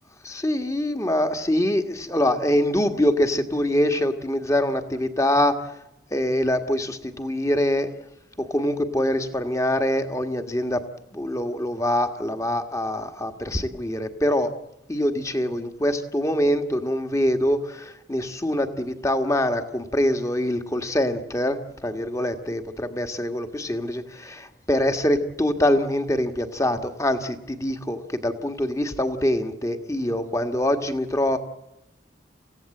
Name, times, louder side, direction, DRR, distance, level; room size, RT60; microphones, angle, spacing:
voice 1, 0.2-5.7 6.1-7.9 8.4-10.8 11.1-14.5 14.9-31.4, left 1 dB, 15° left, 7 dB, 1.6 m, -24 dB
28.5 x 16.5 x 7.8 m, 0.88 s
head